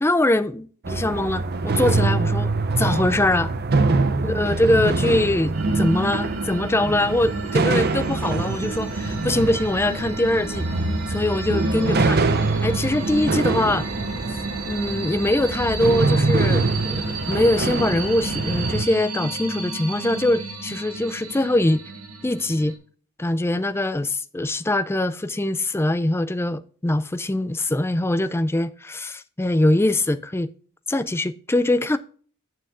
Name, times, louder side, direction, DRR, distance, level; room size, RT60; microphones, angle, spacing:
voice 1, 0.0-3.5 4.2-10.7 11.1-12.2 12.6-13.9 14.7-21.8 22.2-22.7 23.2-30.5 30.9-32.0, left 1 dB, 10° left, 0.4 m, -23 dB
sound 1, 0.8-18.8, right 3 dB, 45° right, 0.7 m, -24 dB
sound 2, 5.5-22.7, right 3 dB, 70° right, 2.2 m, -32 dB
8.9 x 6.8 x 3.5 m
head